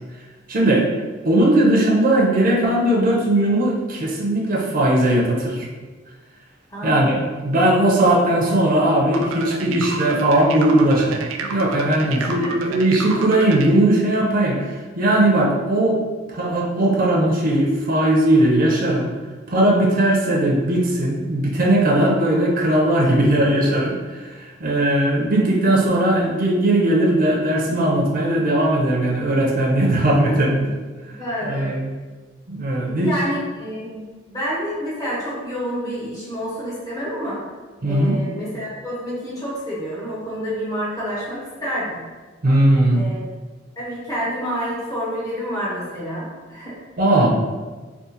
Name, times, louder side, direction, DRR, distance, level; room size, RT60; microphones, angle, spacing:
voice 1, 0.5-0.9 1.2-5.7 6.8-14.6 15.0-16.0 16.3-19.1 19.5-30.7 31.5-31.9 32.5-33.1 37.8-38.2 42.4-43.1 47.0-47.3, right 1 dB, 45° right, -3 dB, 0.6 m, -18 dB
voice 2, 6.7-7.3 12.2-12.8 30.2-30.7 31.2-31.9 32.8-37.5 37.8-42.0 42.9-43.2 43.8-46.8, equal, 20° left, -8 dB, 1.0 m, -29 dB
sound 1, 9.1-13.7, right 4 dB, 90° right, 0.4 m, -30 dB
3.6 x 2.4 x 2.8 m, 1.3 s
head